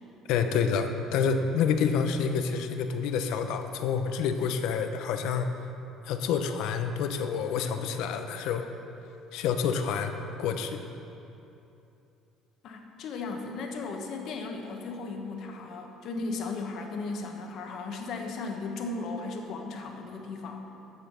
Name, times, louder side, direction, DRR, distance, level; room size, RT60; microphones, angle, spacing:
voice 1, 0.3-5.5 6.1-8.7 9.3-10.9, left 6 dB, 70° left, 7 dB, 0.8 m, -28 dB
voice 2, 12.6-20.6, left 3 dB, 50° left, 3 dB, 1.3 m, -36 dB
13.5 x 5.8 x 6.9 m, 2.8 s
cardioid pair, 155°, 0 cm